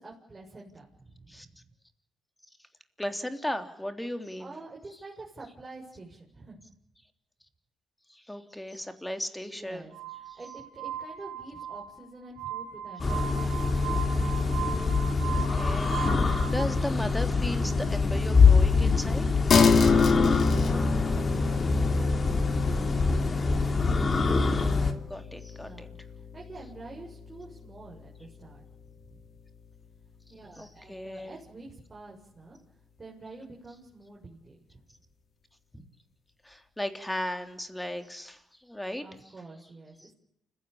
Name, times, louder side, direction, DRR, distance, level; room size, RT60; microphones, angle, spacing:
voice 1, 0.0-1.5 4.4-6.6 9.5-14.0 14.4-14.6 19.4-22.1 22.4-22.6 25.6-28.6 29.1-29.2 30.3-32.6 33.0-34.8 39.0-40.1, right 2 dB, 25° right, -3 dB, 7.3 m, -47 dB
voice 2, 3.0-4.5 8.1-9.8 15.3-19.6 24.5-25.9 30.6-31.3 35.7-35.8 36.4-39.0 40.0-40.1, left 1 dB, 5° left, 7 dB, 3.5 m, -36 dB
Glass, 9.9-16.6, right 10 dB, 85° right, 3.2 m, -38 dB
sound 1, 13.0-24.9, left 4 dB, 35° left, 3.1 m, -24 dB
sound 2, 19.5-29.2, left 5 dB, 55° left, 2.9 m, -29 dB
29.0 x 17.0 x 8.7 m, 0.76 s
cardioid pair, 90°, 0 cm